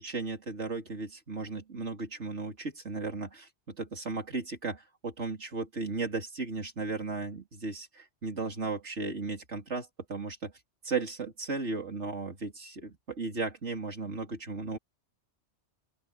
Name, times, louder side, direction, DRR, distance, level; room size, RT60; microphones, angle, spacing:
voice 1, 0.0-10.5 10.8-14.8, right 3 dB, 80° right, 3.7 m, -35 dB
open air
omnidirectional pair, 1.2 m